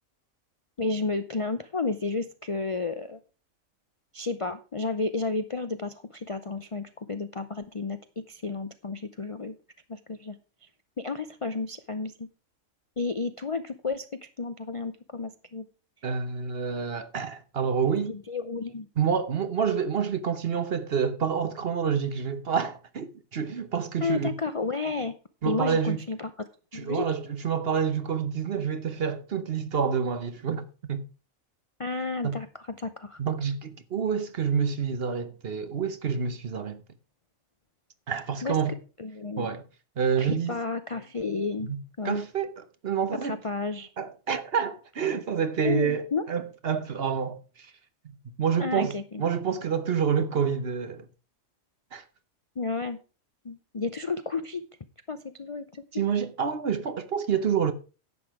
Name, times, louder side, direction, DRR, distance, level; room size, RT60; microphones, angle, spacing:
voice 1, 0.8-3.2 4.1-8.0 8.3-9.5 9.9-10.4 10.6-10.7 11.0-12.3 13.0-14.1 14.4-15.7 18.1-18.9 24.0-25.1 25.4-26.3 26.7-27.0 31.8-33.2 38.4-38.6 39.0-39.5 40.2-41.7 42.0-42.2 43.2-43.9 45.6-46.2 48.6-49.2 52.6-53.0 53.4-54.6 55.1-55.6 55.9-56.0, left 4 dB, 40° left, 0.5 m, -31 dB
voice 2, 16.0-18.1 19.0-24.3 25.4-26.0 26.7-31.0 32.2-32.4 33.2-36.8 38.1-38.8 39.4-39.6 40.0-40.5 41.7-41.8 42.0-43.4 44.0-47.7 48.0-51.0 51.9-52.0 55.9-57.7, right 7 dB, 50° right, 1.0 m, -28 dB
11.0 x 8.0 x 4.8 m
omnidirectional pair, 1.4 m